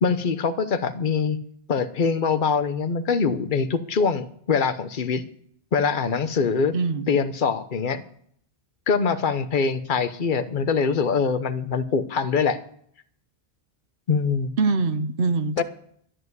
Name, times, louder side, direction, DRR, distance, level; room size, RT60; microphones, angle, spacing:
voice 1, 0.0-1.4 1.7-5.2 5.7-6.7 7.1-8.0 8.9-12.6 14.1-14.5 15.6-15.7, left 5 dB, 45° left, 10 dB, 1.0 m, -23 dB
voice 2, 6.7-7.1 14.6-15.6, right 4 dB, 55° right, 13 dB, 1.0 m, -23 dB
13.0 x 7.8 x 8.1 m, 0.63 s
omnidirectional pair, 1.2 m